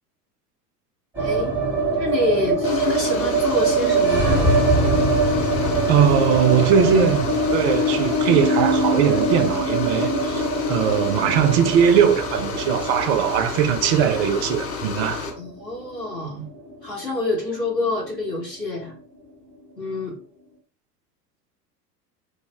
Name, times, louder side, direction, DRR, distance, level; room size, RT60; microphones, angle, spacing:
sound 1, 1.1-17.3 17.5-17.6 17.9-18.6, right 2 dB, 5° right, 0.8 m, -23 dB
voice 1, 1.2-1.6 1.9-4.5 15.4-16.5 16.8-18.9 19.8-20.2, left 2 dB, 90° left, 1.3 m, -27 dB
sound 2, 2.6-15.3, left 4 dB, 30° left, 0.7 m, -31 dB
voice 2, 5.9-10.4 10.7-15.3, right 8 dB, 45° right, 0.5 m, -20 dB
2.5 x 2.0 x 3.4 m
figure-of-eight pair, 80°, 48 cm